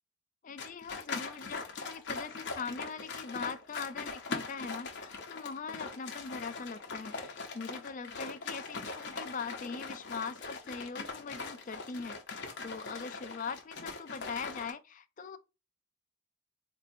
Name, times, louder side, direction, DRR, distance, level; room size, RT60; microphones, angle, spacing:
voice 1, 0.4-12.2 12.6-15.4, left 5 dB, 35° left, 0.3 m, -41 dB
sound 1, 0.6-14.7, left 4 dB, 50° left, 0.8 m, -41 dB
4.0 x 2.7 x 2.6 m
head